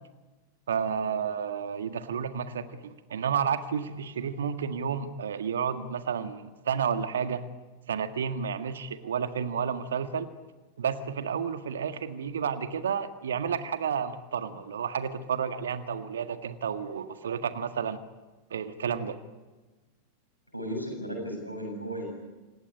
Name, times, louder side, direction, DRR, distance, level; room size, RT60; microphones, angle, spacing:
voice 1, 0.7-7.5 7.9-10.3 10.8-18.0 18.5-19.2, right 7 dB, 65° right, 9 dB, 1.7 m, -31 dB
voice 2, 20.5-22.1, equal, 90° left, 2 dB, 7.6 m, -35 dB
27.0 x 17.0 x 9.9 m, 1.2 s
figure-of-eight pair, 90°, 0 cm